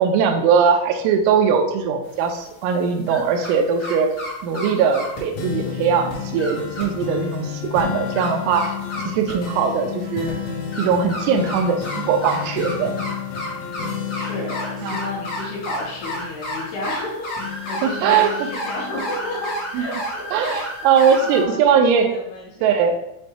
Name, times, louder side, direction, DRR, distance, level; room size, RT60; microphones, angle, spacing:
voice 1, 0.0-4.1 4.4-8.8 9.1-10.3 10.8-12.9 14.8-15.0 17.8-18.5 19.7-19.9 20.3-22.1 22.6-23.0, right 6 dB, 85° right, 5 dB, 3.1 m, -20 dB
sound 1, 2.1-3.5 3.8-5.2 5.8-5.9 6.1-6.8 7.3-7.4 7.8-9.5 10.2-21.4, left 1 dB, 45° left, 1.5 m, -31 dB
Guitar Chords, 5.4-17.0 17.4-19.3 19.8-19.9, left 7 dB, 90° left, 3.5 m, -32 dB
voice 2, 14.1-20.3 21.2-22.7, left 1 dB, 70° left, -4 dB, 2.8 m, -32 dB
7.8 x 2.6 x 4.6 m, 0.81 s
omnidirectional pair, 5.5 m